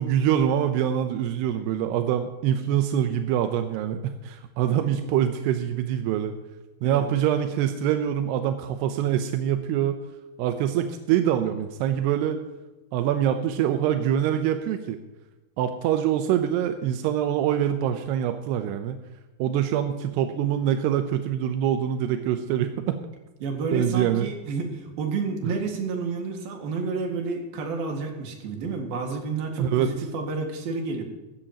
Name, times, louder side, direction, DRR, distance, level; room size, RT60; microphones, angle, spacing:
voice 1, 0.0-6.4 6.8-10.0 10.4-12.4 12.9-15.0 15.6-19.0 19.4-23.0 23.7-24.3 29.6-29.9, right 10 dB, 90° right, 8 dB, 2.8 m, -24 dB
voice 2, 23.4-31.0, right 4 dB, 70° right, 2 dB, 3.6 m, -30 dB
16.5 x 14.0 x 2.9 m, 1.1 s
omnidirectional pair, 4.6 m